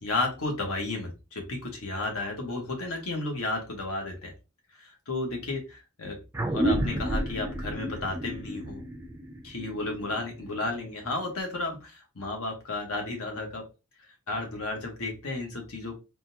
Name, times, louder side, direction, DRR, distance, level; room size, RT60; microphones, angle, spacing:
voice 1, 0.0-4.3 4.7-6.2 6.5-8.8 9.4-13.7 14.3-16.0, left 2 dB, 80° left, 2 dB, 1.1 m, -33 dB
sound 1, 6.3-11.2, right 1 dB, 10° right, 0.4 m, -31 dB
3.6 x 2.3 x 2.7 m, 0.28 s
head